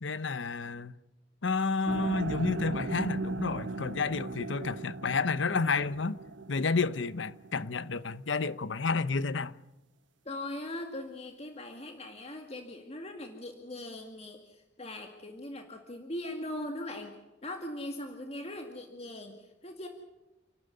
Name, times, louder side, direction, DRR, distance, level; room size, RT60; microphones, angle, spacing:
voice 1, 0.0-0.9 1.4-6.2 6.5-9.6, left 4 dB, 80° left, 0.8 m, -30 dB
sound 1, 1.9-8.0, right 2 dB, 80° right, 1.0 m, -38 dB
voice 2, 10.3-17.2 17.4-19.9, left 1 dB, 35° left, 2.1 m, -40 dB
29.0 x 12.0 x 9.7 m
head